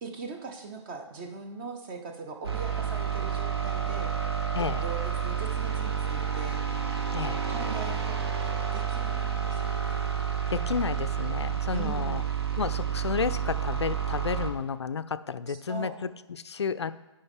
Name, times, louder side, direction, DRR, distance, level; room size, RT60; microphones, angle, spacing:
voice 1, 0.0-4.1 4.8-6.6 7.5-10.0 11.7-12.2 15.5-16.0, right 4 dB, 20° right, 5 dB, 0.7 m, -40 dB
sound 1, 2.4-14.5, right 7 dB, 55° right, 1.2 m, -30 dB
voice 2, 4.5-4.8 7.1-7.4 10.5-12.2 12.6-16.9, left 6 dB, 60° left, 13 dB, 0.4 m, -31 dB
11.5 x 5.3 x 3.6 m, 1.1 s
figure-of-eight pair, 140°, 16 cm